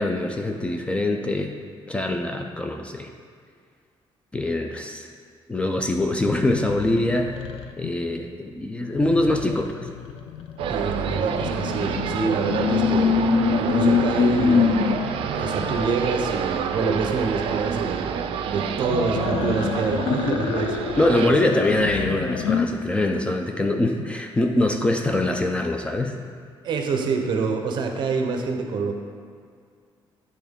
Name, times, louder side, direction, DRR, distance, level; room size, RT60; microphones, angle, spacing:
voice 1, 0.0-1.5 1.9-3.1 4.3-5.1 5.5-7.3 7.8-9.9 21.0-26.2, left 1 dB, 10° left, 3 dB, 0.3 m, -23 dB
sound 1, 6.0-7.9 8.9-15.8 18.8-22.7, left 6 dB, 90° left, 0.4 m, -26 dB
sound 2, 10.6-21.3, right 7 dB, 85° right, 0.4 m, -28 dB
voice 2, 10.7-13.2 13.6-15.0 15.3-20.8 21.3-21.6 26.6-28.9, right 4 dB, 55° right, 3 dB, 0.7 m, -26 dB
10.0 x 3.6 x 3.6 m, 2.2 s
cardioid pair, 170°, 9 cm